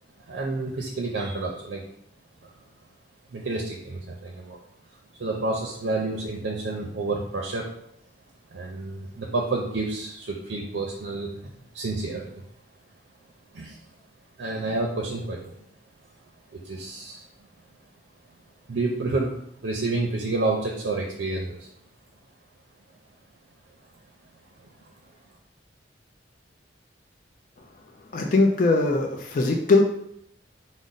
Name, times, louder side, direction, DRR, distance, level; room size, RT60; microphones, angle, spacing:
voice 1, 0.3-1.8 2.4-2.5 3.3-4.6 5.2-7.7 8.5-12.4 13.5-13.8 14.4-15.5 16.6-17.3 18.7-21.7 24.6-24.7, right 2 dB, 75° right, -1 dB, 0.5 m, -29 dB
voice 2, 28.1-29.8, left 3 dB, 45° left, 1 dB, 0.4 m, -20 dB
4.9 x 2.1 x 4.0 m, 0.71 s
head